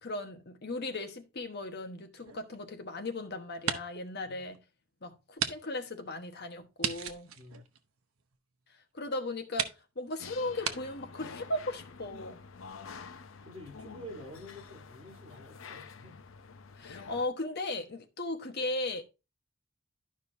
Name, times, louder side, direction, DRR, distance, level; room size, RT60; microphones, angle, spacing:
voice 1, 0.0-4.5 5.0-7.3 8.9-9.7 10.0-12.4 16.8-19.0, left 2 dB, 50° left, 1.1 m, -37 dB
sound 1, 2.2-3.1 3.5-4.1 4.5-4.6 5.4-5.6 5.8-5.9 6.8-8.4 9.0-9.1 9.5-9.8 10.6-10.8, right 8 dB, 85° right, 0.8 m, -35 dB
voice 2, 7.3-7.7 13.4-16.2, left 1 dB, 30° right, 3.1 m, -48 dB
sound 2, 10.2-17.3, left 5 dB, 70° left, 0.6 m, -48 dB
11.5 x 5.4 x 2.6 m
head